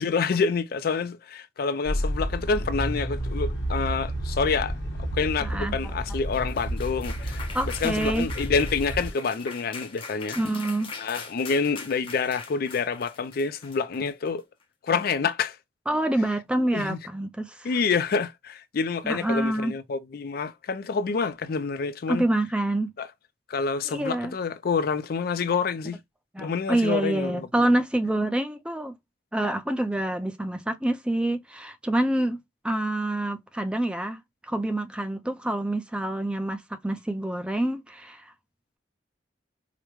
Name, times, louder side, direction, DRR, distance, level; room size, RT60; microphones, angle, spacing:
voice 1, 0.0-7.5 7.8-10.4 11.0-14.5 14.8-15.6 16.7-17.0 17.6-22.2 23.0-23.1 23.5-26.0 26.4-27.7, left 5 dB, 55° left, 0.4 m, -27 dB
sound 1, 1.8-9.1, right 1 dB, 80° left, 1.1 m, -30 dB
voice 2, 5.4-5.9 7.5-8.3 10.4-10.9 15.9-17.7 19.0-19.7 22.1-22.9 23.9-24.3 26.3-28.9 29.3-32.4 32.6-34.2 34.5-38.3, right 1 dB, 5° right, 0.4 m, -27 dB
sound 2, 6.1-14.4, left 4 dB, 30° left, 0.8 m, -42 dB
4.9 x 2.1 x 3.0 m
head